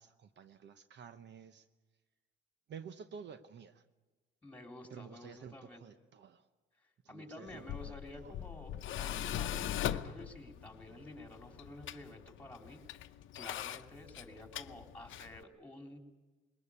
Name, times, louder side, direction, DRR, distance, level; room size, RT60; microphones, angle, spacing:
voice 1, 0.0-1.7 2.7-3.8 4.9-6.5 7.0-8.5, right 6 dB, 65° right, 11 dB, 1.0 m, -51 dB
voice 2, 4.4-5.8 7.1-16.0, left 1 dB, 10° left, 3 dB, 3.7 m, -51 dB
Tools, 7.5-15.4, left 11 dB, 75° left, 0.8 m, -41 dB
21.5 x 19.5 x 8.6 m, 1.2 s
cardioid pair, 90°, 20 cm